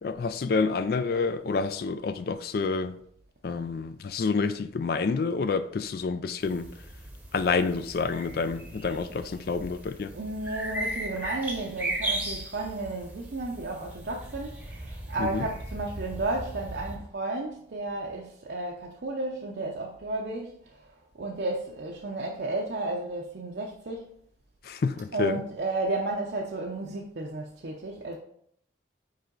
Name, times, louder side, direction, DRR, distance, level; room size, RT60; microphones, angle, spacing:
voice 1, 0.0-3.0 3.4-6.7 7.3-10.1 15.2-15.5 24.6-25.4, left 4 dB, 55° left, 0.3 m, -28 dB
sound 1, 6.4-17.0, right 1 dB, 10° right, 0.8 m, -37 dB
voice 2, 10.1-24.1 25.1-28.2, right 2 dB, 60° right, 0.7 m, -33 dB
5.4 x 4.9 x 3.8 m
head